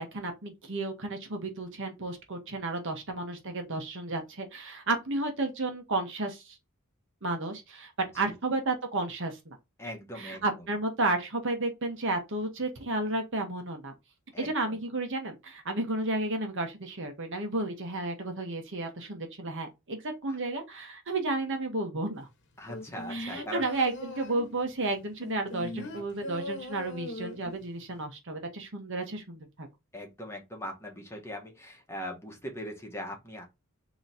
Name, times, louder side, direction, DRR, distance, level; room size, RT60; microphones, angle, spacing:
voice 1, 0.0-6.6 7.2-9.6 10.2-13.9 14.4-22.3 23.1-29.7, right 2 dB, 60° right, 1.2 m, -32 dB
voice 2, 9.8-10.7 14.3-14.8 20.3-20.4 22.6-23.8 25.6-26.0 29.9-33.4, equal, 10° left, 1.3 m, -41 dB
sound 1, 22.7-24.6 25.2-27.6 27.9-28.0, left 1 dB, 55° left, 1.1 m, -39 dB
3.9 x 3.1 x 4.1 m
head